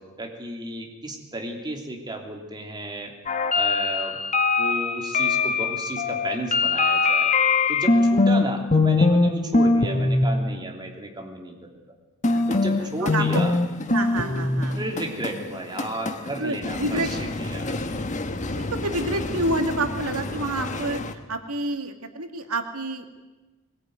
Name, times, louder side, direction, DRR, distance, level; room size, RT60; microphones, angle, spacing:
voice 1, 0.0-3.1 3.5-4.2 4.6-7.3 7.7-11.8 12.5-13.5 14.7-17.8, right 1 dB, 20° right, 2 dB, 3.2 m, -33 dB
sound 1, 3.3-8.4 8.7-9.3 9.5-10.2 12.2-21.1, left 3 dB, 35° left, 1.5 m, -23 dB
voice 2, 7.9-8.3 12.3-13.4 13.9-14.8 16.4-17.1 18.6-23.1, right 2 dB, 85° right, 6 dB, 2.3 m, -29 dB
21.5 x 20.5 x 9.4 m, 1.1 s
head